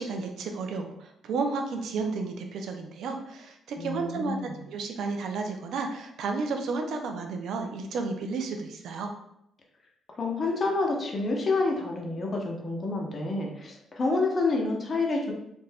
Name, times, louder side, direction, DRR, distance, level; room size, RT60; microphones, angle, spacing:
voice 1, 0.0-9.1, right 4 dB, 75° right, 4 dB, 0.4 m, -32 dB
voice 2, 3.8-4.6 10.2-15.3, left 3 dB, 35° left, 0 dB, 0.7 m, -28 dB
2.5 x 2.2 x 3.3 m, 0.77 s
cardioid pair, 90°, 0 cm